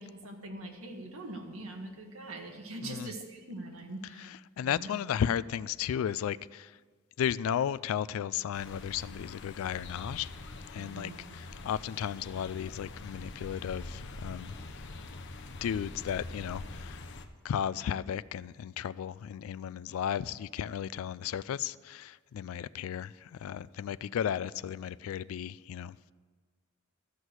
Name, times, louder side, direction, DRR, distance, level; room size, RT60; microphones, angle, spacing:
voice 1, 0.0-4.3 4.6-5.0 10.8-11.4, right 2 dB, 75° right, 1.7 m, -43 dB
voice 2, 4.6-6.7 7.2-10.3 10.7-14.5 15.6-17.0 17.4-25.9, left 9 dB, 75° left, 0.3 m, -34 dB
sound 1, 8.5-17.3, left 2 dB, 55° left, 0.8 m, -44 dB
13.0 x 6.2 x 8.1 m
head